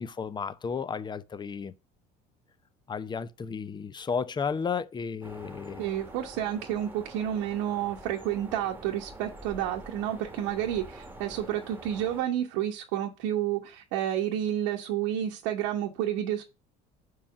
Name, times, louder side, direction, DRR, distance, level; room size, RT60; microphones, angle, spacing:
voice 1, 0.0-1.7 2.9-5.8, left 6 dB, 25° left, 0.7 m, -33 dB
sound 1, 5.2-12.2, right 2 dB, 10° right, 1.4 m, -46 dB
voice 2, 5.8-16.4, right 11 dB, 80° right, 1.2 m, -30 dB
5.8 x 4.8 x 6.0 m
supercardioid pair, 95°, 19 cm